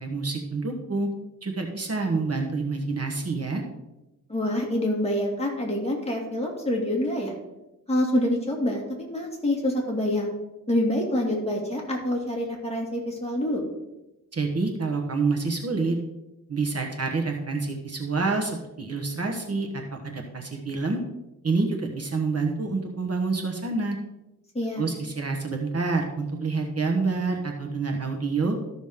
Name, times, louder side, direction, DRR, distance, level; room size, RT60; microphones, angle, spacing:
voice 1, 0.0-1.1 1.4-3.6 14.3-16.0 16.5-21.0 21.4-24.0 24.8-28.6, right 3 dB, 45° right, 2 dB, 1.2 m, -27 dB
voice 2, 4.3-7.3 7.9-10.3 10.7-13.6 24.5-24.9, left 1 dB, 20° left, -2 dB, 2.3 m, -26 dB
13.5 x 6.1 x 3.6 m, 0.97 s
wide cardioid pair, 110°, 33 cm